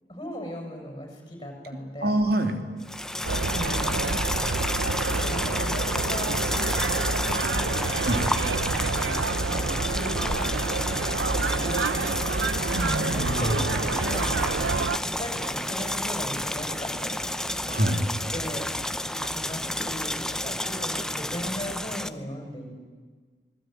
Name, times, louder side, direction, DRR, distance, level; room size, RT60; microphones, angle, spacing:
voice 1, 0.1-2.2 3.4-4.5 5.1-6.4 7.1-8.0 8.7-12.1 13.0-17.7 18.0-18.7 19.1-22.7, equal, 25° left, 2 dB, 6.8 m, -38 dB
voice 2, 2.0-2.7 8.0-8.2 12.7-13.6 17.7-18.1, right 1 dB, 60° right, 5 dB, 3.1 m, -26 dB
sound 1, 2.8-22.1, left 1 dB, 5° left, 0.8 m, -31 dB
sound 2, 3.2-15.0, right 3 dB, 90° right, 0.9 m, -28 dB
Writing, 12.6-21.9, right 1 dB, 30° right, 1.5 m, -45 dB
26.0 x 20.5 x 9.5 m, 1.5 s
head